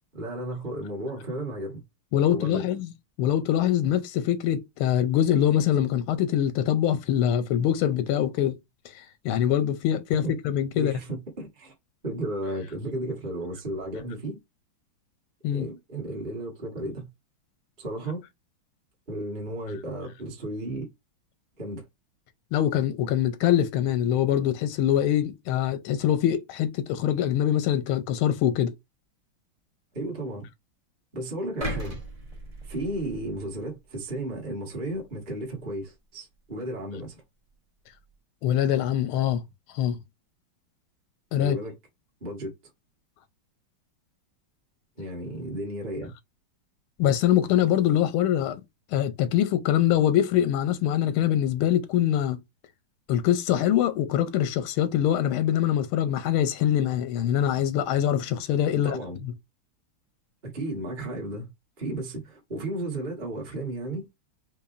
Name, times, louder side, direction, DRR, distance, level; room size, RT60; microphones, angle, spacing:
voice 1, 0.1-1.8 2.3-2.7 10.2-10.3 10.7-11.7 12.0-14.4 15.5-17.1 17.8-18.2 19.1-20.9 21.6-21.9 29.9-30.5 31.1-32.0 32.6-37.2 41.4-41.8 42.2-42.5 45.0-46.1 58.7-59.2 60.4-61.5 61.8-64.1, right 1 dB, 25° right, 1.3 m, -34 dB
voice 2, 2.1-2.9 3.2-8.6 8.8-10.9 15.4-15.7 22.5-28.7 38.4-39.4 39.7-40.0 41.3-41.6 47.0-48.6 48.9-52.4 53.1-59.0, left 10 dB, 90° left, 1.5 m, -24 dB
sound 1, 31.6-33.8 34.2-34.4, right 1 dB, 70° right, 0.3 m, -36 dB
4.8 x 2.6 x 2.5 m
omnidirectional pair, 2.3 m